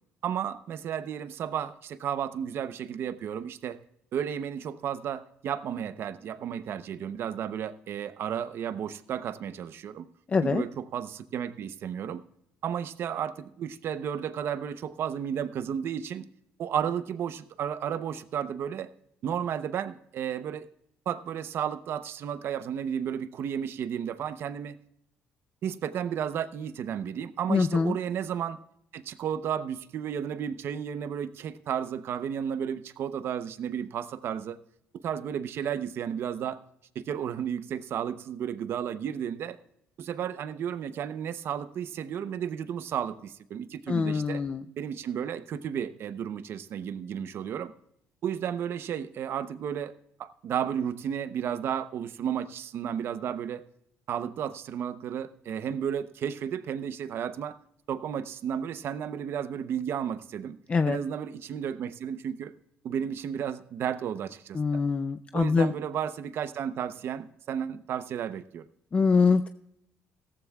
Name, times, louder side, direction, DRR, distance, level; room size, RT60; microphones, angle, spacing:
voice 1, 0.2-3.8 4.1-10.1 10.4-12.2 12.6-16.3 16.6-18.9 19.2-20.7 21.1-24.8 25.6-28.6 28.9-34.6 35.0-36.6 36.9-39.6 40.0-44.4 44.8-47.7 48.2-49.9 50.2-53.6 54.1-57.6 57.9-60.6 60.9-62.5 62.8-64.8 65.3-68.7, right 8 dB, 55° right, 13 dB, 0.8 m, -33 dB
voice 2, 10.3-10.6 27.5-28.0 43.9-44.6 60.7-61.0 64.6-65.7 68.9-69.5, left 4 dB, 25° left, 10 dB, 0.5 m, -24 dB
16.0 x 14.5 x 2.3 m, 0.75 s
cardioid pair, 125°, 5 cm